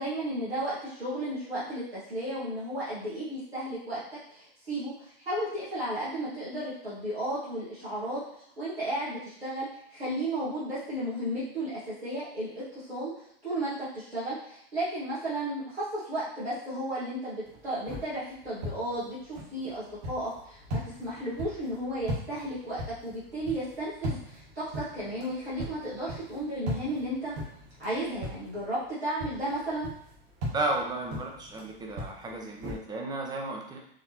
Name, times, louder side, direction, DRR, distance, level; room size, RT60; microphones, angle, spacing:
voice 1, 0.0-4.0 4.3-8.2 8.6-13.1 13.4-27.3 27.8-29.9, right 1 dB, 90° right, -10 dB, 1.8 m, -34 dB
sound 1, 17.5-28.9 29.2-32.8, equal, 45° right, 1.6 m, -40 dB
voice 2, 30.5-33.8, right 2 dB, 15° right, 1 dB, 0.8 m, -33 dB
5.0 x 3.1 x 2.9 m, 0.71 s
hypercardioid pair, 105°, 30 cm